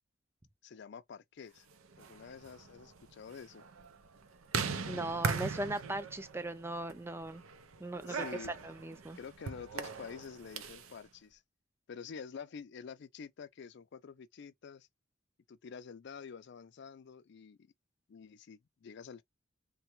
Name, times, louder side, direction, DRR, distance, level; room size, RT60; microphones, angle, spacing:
voice 1, 0.6-1.7 2.0-3.7 8.0-8.7 9.1-11.4 11.9-14.9 15.5-17.7 18.1-19.2, left 6 dB, 55° left, 0.4 m, -48 dB
sound 1, 1.8-10.9, right 5 dB, 90° right, 0.6 m, -40 dB
voice 2, 4.9-7.4 7.8-8.3 8.6-9.2, right 2 dB, 10° right, 0.4 m, -38 dB
3.3 x 2.2 x 2.9 m
head